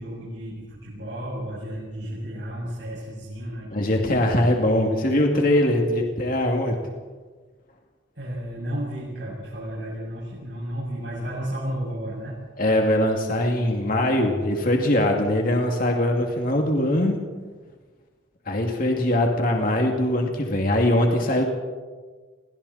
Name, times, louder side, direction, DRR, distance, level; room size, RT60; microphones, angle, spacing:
voice 1, 0.0-4.0 8.1-12.4, equal, 70° right, -6 dB, 7.2 m, -33 dB
voice 2, 3.7-6.8 12.6-17.2 18.5-21.4, left 1 dB, 50° left, 1 dB, 2.6 m, -22 dB
30.0 x 23.0 x 4.3 m, 1.4 s
head